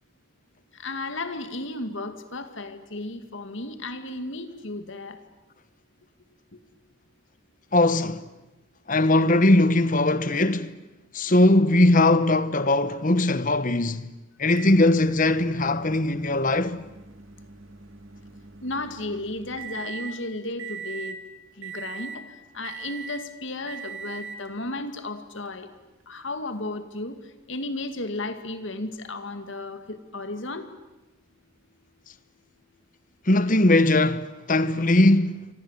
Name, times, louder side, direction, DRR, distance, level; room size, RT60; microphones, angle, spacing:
voice 1, 0.8-5.2 18.6-21.2 21.6-22.3 22.5-25.7 26.1-27.2 27.5-30.7, left 2 dB, 60° left, 2.3 m, -34 dB
voice 2, 7.7-8.3 8.9-10.8 11.1-14.1 14.4-16.8 33.3-35.5, left 2 dB, 40° left, 1.2 m, -20 dB
Microwave oven, 14.6-20.2 20.6-21.2 21.6-22.2 22.6-23.3 23.7-24.5 25.5-25.6 27.6-27.7, right 6 dB, 70° right, 2.6 m, -41 dB
29.0 x 25.0 x 8.3 m
head